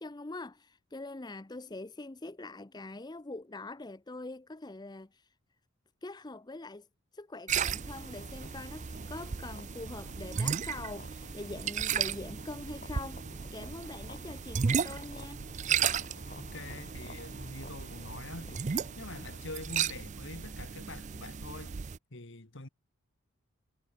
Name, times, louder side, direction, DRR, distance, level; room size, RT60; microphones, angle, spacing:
voice 1, 0.0-5.3 6.0-6.9 7.1-15.4, left 2 dB, 20° left, 0.6 m, -44 dB
sound 1, 7.5-22.0, right 7 dB, 35° right, 0.4 m, -35 dB
sound 2, 7.7-19.5, left 2 dB, 35° left, 3.9 m, -52 dB
voice 2, 16.4-18.7 19.0-21.8 22.1-22.7, left 2 dB, 55° left, 1.8 m, -45 dB
head